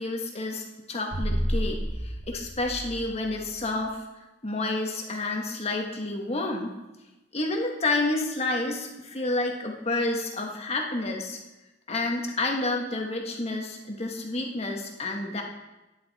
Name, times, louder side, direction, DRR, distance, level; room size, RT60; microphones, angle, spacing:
voice 1, 0.0-4.0 4.4-6.7 7.3-11.4 11.9-15.4, left 2 dB, 35° left, 1 dB, 1.5 m, -29 dB
sound 1, 1.1-3.5, equal, 65° right, 3.7 m, -31 dB
11.5 x 9.6 x 4.2 m, 1.0 s
head